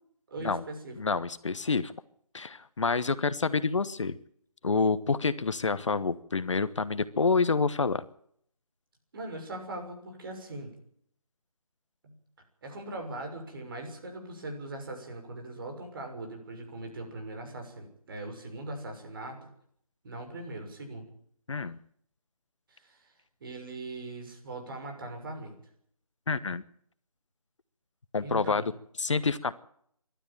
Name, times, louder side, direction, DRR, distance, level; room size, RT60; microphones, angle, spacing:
voice 1, 0.3-1.0 9.1-10.7 12.0-12.1 12.6-19.4 20.0-21.1 22.7-23.1 23.4-25.6 28.2-28.7, right 2 dB, 40° right, 4 dB, 6.4 m, -40 dB
voice 2, 1.0-1.9 2.3-4.2 4.6-8.0 21.5-21.8 26.3-26.6 28.1-28.6 29.0-29.5, left 4 dB, 55° left, 15 dB, 1.1 m, -28 dB
23.5 x 12.5 x 9.0 m, 0.65 s
figure-of-eight pair, 155°, 18 cm